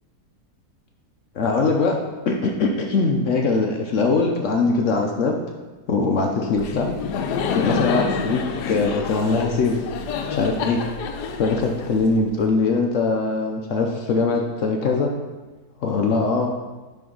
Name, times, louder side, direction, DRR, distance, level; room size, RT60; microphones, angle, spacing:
voice 1, 1.3-2.0 2.3-5.3 5.9-6.9 7.5-9.8 10.3-10.8 11.4-15.1 15.8-16.5, left 4 dB, 60° left, 1 dB, 0.9 m, -21 dB
Laughter, 6.6-12.4, left 5 dB, 85° left, 1.2 m, -28 dB
10.5 x 3.4 x 3.8 m, 1.2 s
omnidirectional pair, 1.7 m